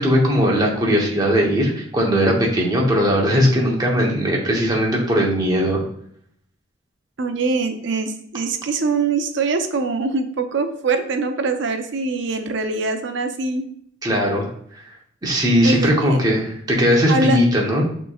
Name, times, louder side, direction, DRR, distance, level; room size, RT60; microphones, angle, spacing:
voice 1, 0.0-5.8 14.0-14.5 15.2-17.8, equal, 20° right, -1 dB, 0.9 m, -18 dB
voice 2, 7.2-13.7 15.6-16.2 17.1-17.4, right 3 dB, 60° right, 7 dB, 0.5 m, -23 dB
6.1 x 3.1 x 2.4 m, 0.66 s
head